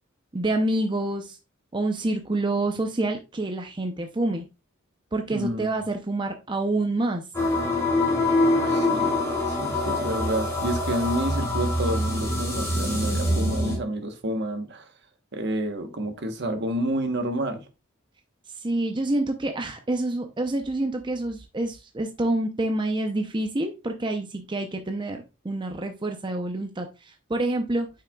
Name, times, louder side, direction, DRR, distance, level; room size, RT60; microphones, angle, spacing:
voice 1, 0.3-1.4 1.7-4.4 5.1-7.2 18.6-27.9, right 2 dB, 25° right, 0.6 m, -27 dB
voice 2, 5.3-5.8 8.5-9.1 9.5-14.8 15.3-17.6, right 1 dB, 55° right, 1.1 m, -29 dB
sound 1, 7.3-13.8, left 1 dB, 15° left, 2.4 m, -24 dB
8.8 x 5.7 x 2.3 m
head